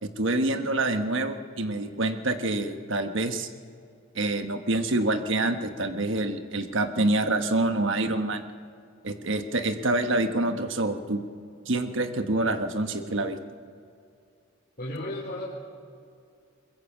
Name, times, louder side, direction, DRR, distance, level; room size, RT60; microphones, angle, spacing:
voice 1, 0.0-3.5 4.1-8.4 9.0-11.2 11.7-13.4, right 2 dB, 65° right, 7 dB, 1.3 m, -26 dB
voice 2, 14.8-15.4, left 1 dB, 45° left, -6 dB, 3.9 m, -34 dB
22.0 x 22.0 x 7.3 m, 2.4 s
head